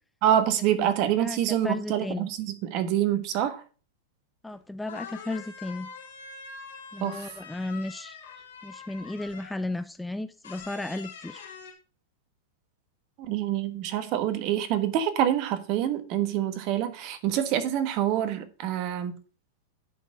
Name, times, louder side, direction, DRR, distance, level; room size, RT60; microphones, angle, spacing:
voice 1, 0.2-3.6 7.0-7.3 13.2-19.2, right 11 dB, 50° right, 1.3 m, -26 dB
voice 2, 1.6-2.3 4.4-5.9 6.9-8.2 8.6-11.4, left 2 dB, 5° left, 0.4 m, -34 dB
sound 1, 4.5-4.6 4.9-9.7 10.4-11.7, left 5 dB, 90° left, 2.8 m, -44 dB
10.0 x 4.2 x 5.3 m
hypercardioid pair, 120°, 0 cm